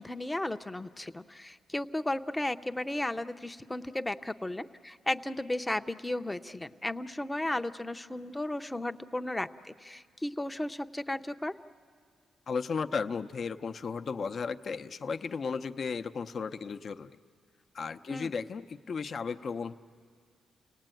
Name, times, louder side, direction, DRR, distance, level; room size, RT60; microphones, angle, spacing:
voice 1, 0.0-11.5 18.1-18.3, left 1 dB, 10° left, 9 dB, 0.6 m, -34 dB
voice 2, 12.5-17.2 17.7-19.7, left 5 dB, 50° left, 8 dB, 0.7 m, -35 dB
30.0 x 19.0 x 9.1 m, 2.2 s
cardioid pair, 105°, 0 cm